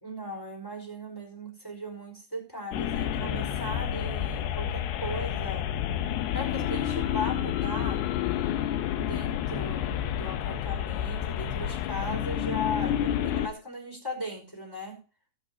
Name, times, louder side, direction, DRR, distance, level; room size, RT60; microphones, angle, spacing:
voice 1, 0.0-5.6 6.3-8.0 9.0-15.0, left 1 dB, 5° left, 0 dB, 4.4 m, -37 dB
sound 1, 2.7-13.5, left 10 dB, 75° left, 2.6 m, -29 dB
19.0 x 8.3 x 2.9 m, 0.36 s
omnidirectional pair, 5.6 m